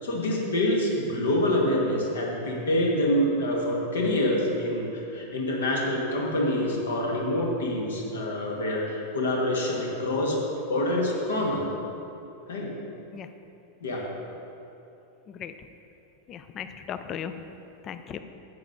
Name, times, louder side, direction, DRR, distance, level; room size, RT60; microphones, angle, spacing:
voice 1, 0.0-10.4 10.7-11.7 12.5-12.7 13.8-14.1, left 1 dB, 65° left, -1 dB, 1.6 m, -26 dB
voice 2, 15.3-15.7 16.3-17.3 17.8-18.2, left 8 dB, 30° left, 10 dB, 0.5 m, -37 dB
10.5 x 8.1 x 3.8 m, 2.8 s
figure-of-eight pair, 90°, 0 cm